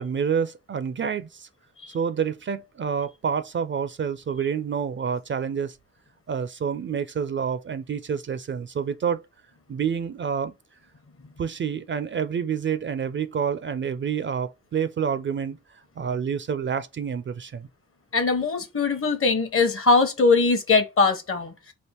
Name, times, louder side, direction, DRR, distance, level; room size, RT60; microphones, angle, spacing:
voice 1, 0.0-1.5 1.9-5.8 6.3-9.2 9.7-10.5 11.4-15.6 16.0-17.7, right 7 dB, 40° right, 0.4 m, -28 dB
voice 2, 18.1-21.7, left 4 dB, 50° left, 1.0 m, -21 dB
3.5 x 2.5 x 4.3 m
cardioid pair, 85°, 29 cm